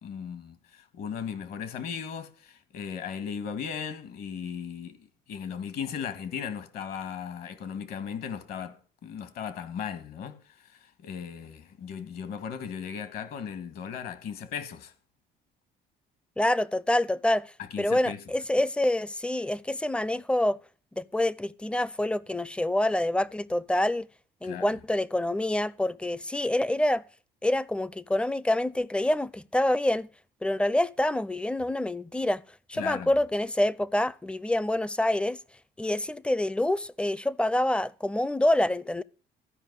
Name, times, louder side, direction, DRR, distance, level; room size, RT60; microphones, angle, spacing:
voice 1, 0.0-14.9 17.6-18.2 24.4-24.7 32.7-33.1, left 7 dB, 65° left, 1.8 m, -37 dB
voice 2, 16.4-20.6 21.0-24.1 24.4-27.0 27.4-30.1 30.4-32.4 32.7-35.4 35.8-39.0, left 1 dB, 5° left, 0.5 m, -26 dB
13.5 x 5.4 x 8.1 m
cardioid pair, 110°, 17 cm